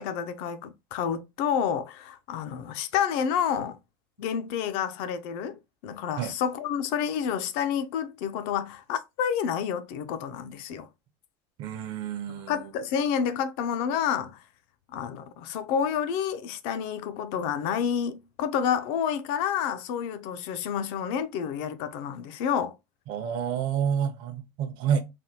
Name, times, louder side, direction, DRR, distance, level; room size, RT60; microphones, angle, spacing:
voice 1, 0.0-3.8 4.2-10.9 12.5-14.4 14.9-22.8, left 8 dB, 65° left, 0.5 m, -29 dB
voice 2, 11.6-12.5 23.1-25.0, right 8 dB, 50° right, 0.6 m, -29 dB
3.4 x 2.2 x 2.7 m
cardioid pair, 155°, 10 cm